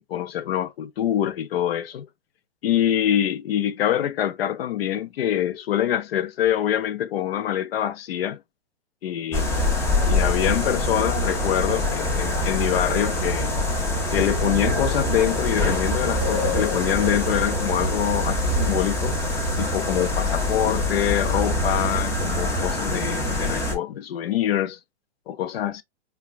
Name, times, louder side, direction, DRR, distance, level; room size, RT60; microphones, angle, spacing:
voice 1, 0.0-2.1 2.6-8.4 9.0-9.6 10.1-13.5 14.1-19.2 19.6-24.8 25.3-25.8, left 11 dB, 65° left, 0.6 m, -25 dB
sound 1, 9.3-23.8, left 1 dB, 10° left, 0.5 m, -24 dB
4.9 x 2.3 x 2.3 m
hypercardioid pair, 140°, 32 cm